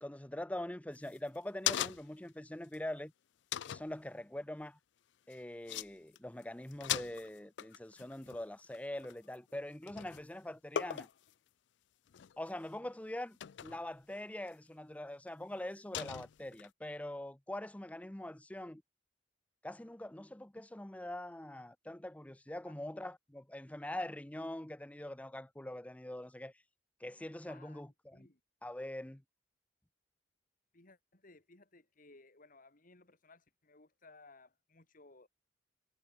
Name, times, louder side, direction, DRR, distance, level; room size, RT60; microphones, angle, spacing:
voice 1, 0.0-3.1 3.6-4.8 5.3-11.1 12.4-18.8 19.6-26.5 27.0-28.3 28.6-29.2, left 1 dB, 10° left, 0.6 m, -43 dB
sound 1, 0.9-2.3 2.7-2.8 3.5-3.9 5.3-5.4 5.7-5.9 6.1-6.4 6.7-9.5 9.9-10.3 10.7-11.3 12.1-12.5 13.4-13.8 14.5-14.6 15.9-16.7, left 11 dB, 75° left, 0.4 m, -39 dB
voice 2, 27.5-28.4 30.7-35.3, left 3 dB, 50° left, 2.8 m, -61 dB
head